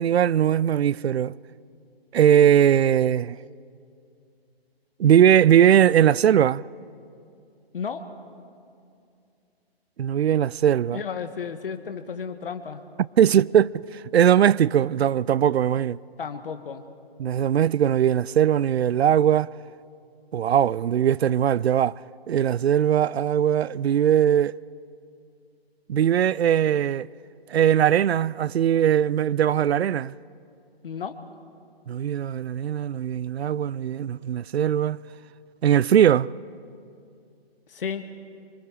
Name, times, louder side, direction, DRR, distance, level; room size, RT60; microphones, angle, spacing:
voice 1, 0.0-1.3 2.1-3.4 5.0-6.6 10.0-11.0 13.2-16.0 17.2-19.5 20.3-21.9 22.3-24.5 25.9-27.1 27.5-30.1 31.9-35.0 35.6-36.3, right 10 dB, 85° right, 0.5 m, -20 dB
voice 2, 7.7-8.1 10.9-12.8 16.2-16.9 30.8-31.2 37.7-38.1, left 6 dB, 60° left, 1.5 m, -33 dB
25.5 x 24.5 x 5.0 m
hypercardioid pair, 155°, 31 cm